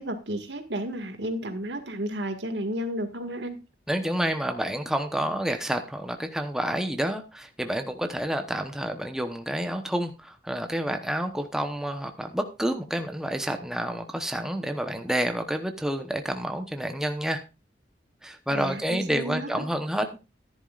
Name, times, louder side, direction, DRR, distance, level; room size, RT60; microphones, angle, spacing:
voice 1, 0.0-3.6 18.5-19.7, equal, 75° right, 6 dB, 1.9 m, -32 dB
voice 2, 3.9-17.4 18.2-20.2, right 1 dB, 5° right, 5 dB, 0.9 m, -29 dB
14.5 x 10.5 x 2.5 m, 0.28 s
head